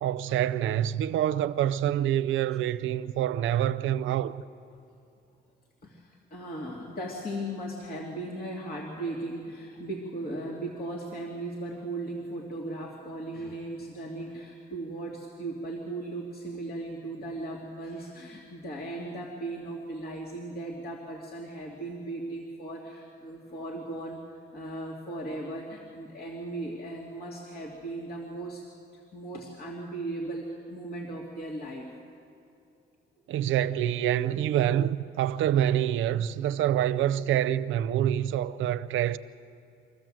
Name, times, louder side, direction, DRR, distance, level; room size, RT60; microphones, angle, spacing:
voice 1, 0.0-4.4 33.3-39.2, right 11 dB, 80° right, 0.6 m, -26 dB
voice 2, 5.8-24.2 24.5-28.7 28.9-31.9, right 2 dB, 50° left, 2.6 m, -37 dB
25.0 x 14.0 x 7.6 m
cardioid pair, 90°, 20 cm